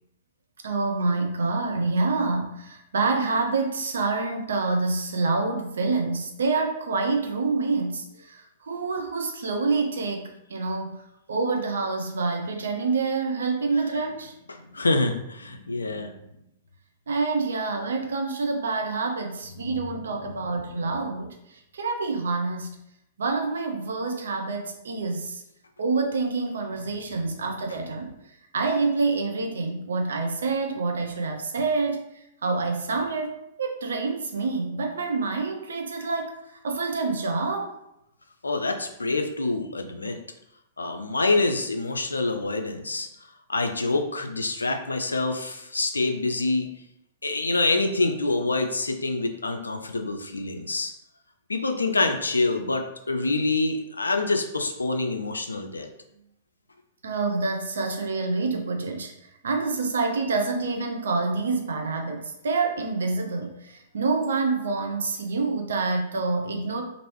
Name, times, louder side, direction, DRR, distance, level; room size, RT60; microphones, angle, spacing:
voice 1, 0.6-14.3 17.1-22.8 23.2-25.4 25.8-28.1 28.5-36.4 36.6-37.8 57.0-59.1 59.4-66.8, right 3 dB, 65° right, 2 dB, 0.5 m, -27 dB
voice 2, 14.5-16.1 19.6-19.8 38.4-40.2 40.8-43.1 43.5-46.7 47.2-50.9 51.5-55.9, left 2 dB, 75° left, 5 dB, 0.4 m, -26 dB
3.0 x 2.6 x 3.0 m, 0.81 s
figure-of-eight pair, 105°, 0 cm